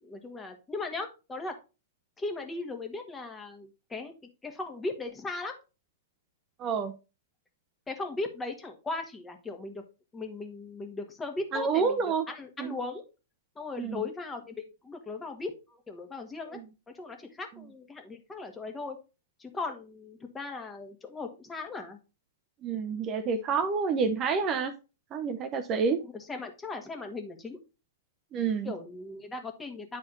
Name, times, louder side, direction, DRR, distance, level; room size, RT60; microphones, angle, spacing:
voice 1, 0.0-1.5 2.2-4.1 4.4-5.5 7.9-9.8 10.1-13.0 13.5-16.6 16.9-19.0 19.4-22.0 26.0-27.6 28.6-30.0, left 3 dB, 15° left, 4 dB, 1.6 m, -38 dB
voice 2, 6.6-6.9 11.5-12.2 12.6-12.8 13.8-14.0 22.6-24.7 25.1-26.0 28.3-28.7, right 5 dB, 30° right, 8 dB, 0.9 m, -28 dB
9.5 x 4.2 x 4.0 m, 0.30 s
hypercardioid pair, 115°, 0 cm